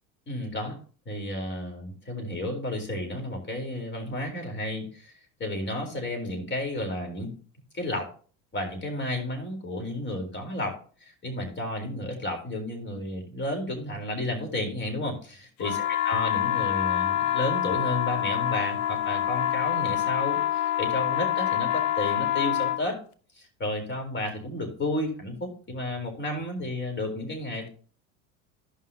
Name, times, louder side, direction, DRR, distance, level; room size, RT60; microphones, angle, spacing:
voice 1, 0.3-0.8 1.1-5.1 5.4-7.3 7.7-8.1 8.5-10.7 11.0-23.0 23.4-27.7, left 1 dB, 30° left, 3 dB, 3.8 m, -32 dB
sound 1, 15.6-22.8, left 12 dB, 75° left, 0.9 m, -26 dB
15.0 x 5.7 x 2.8 m, 0.41 s
hypercardioid pair, 85°, 39 cm